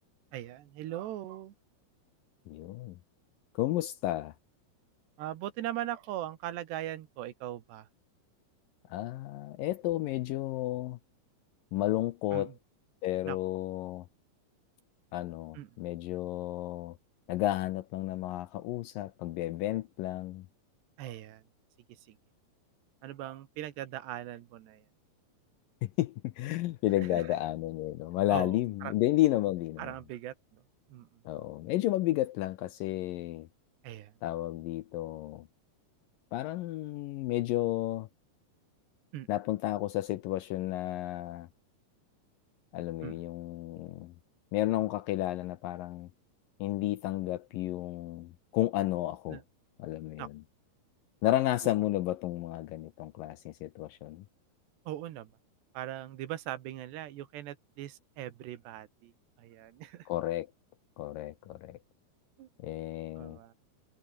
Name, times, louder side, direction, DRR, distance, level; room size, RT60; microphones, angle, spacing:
voice 1, 0.3-1.5 5.2-7.9 12.3-12.6 13.3-13.4 15.5-15.7 21.0-21.4 22.1-22.2 23.0-24.9 27.0-27.3 28.3-28.9 29.8-30.6 30.9-31.2 33.8-34.1 39.1-39.3 43.0-43.2 49.3-49.4 50.2-50.3 51.6-51.8 54.9-55.3 55.7-59.1 59.4-60.1 62.4-62.5 63.2-63.5, right 13 dB, 85° right, 3.7 m, -40 dB
voice 2, 2.5-3.0 3.6-4.3 8.9-11.0 11.7-12.5 13.0-14.1 15.1-17.0 17.3-20.5 26.0-29.9 31.3-33.5 34.2-35.5 36.3-38.1 39.3-41.5 42.7-44.1 44.5-46.1 46.6-49.4 49.8-50.3 51.2-54.2 60.1-60.5 61.0-61.8 62.6-63.4, left 15 dB, 75° left, 2.1 m, -32 dB
omnidirectional pair, 4.7 m